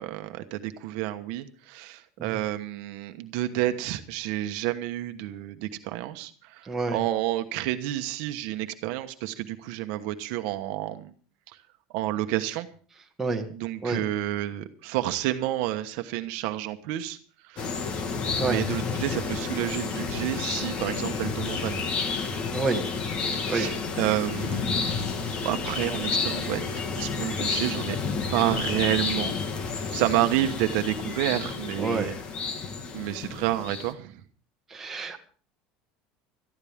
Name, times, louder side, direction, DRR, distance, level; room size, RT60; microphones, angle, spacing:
voice 1, 0.0-11.1 11.5-11.6 11.9-12.7 13.5-17.2 17.4-17.8 18.4-21.8 23.5-25.0 25.4-26.7 27.0-28.0 28.3-29.4 29.8-32.2 32.9-34.2, right 14 dB, 65° right, 8 dB, 1.2 m, -30 dB
voice 2, 6.6-7.0 13.2-13.5 13.8-14.0 18.4-18.6 22.5-22.8 23.5-23.7 31.8-32.1 34.7-35.2, right 3 dB, 10° right, 1 dB, 1.7 m, -28 dB
sound 1, 17.6-33.9, left 5 dB, 35° left, 1.7 m, -30 dB
19.0 x 13.5 x 3.6 m, 0.42 s
cardioid pair, 165°, 3 cm